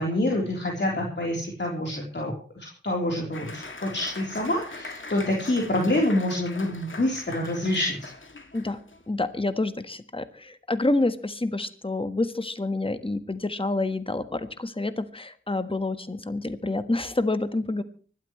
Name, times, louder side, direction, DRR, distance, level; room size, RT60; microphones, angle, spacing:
voice 1, 0.0-8.0, left 1 dB, 65° left, -1 dB, 3.7 m, -27 dB
Applause, 3.3-9.1, left 3 dB, 85° left, 2.4 m, -42 dB
voice 2, 9.1-17.8, left 2 dB, 30° left, 10 dB, 1.4 m, -28 dB
25.0 x 12.5 x 3.1 m, 0.41 s
wide cardioid pair, 45°, 20 cm